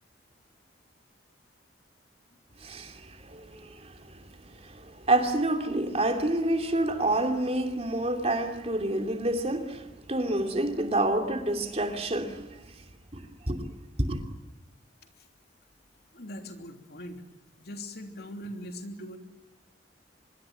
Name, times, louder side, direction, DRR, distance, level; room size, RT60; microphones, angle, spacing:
voice 1, 2.6-4.2 4.6-12.6 13.1-13.2 13.5-13.7 14.0-14.2, right 1 dB, 35° right, 2.8 m, -28 dB
voice 2, 16.1-17.2 17.6-19.2, equal, 60° left, 3.1 m, -41 dB
25.0 x 22.0 x 9.2 m
head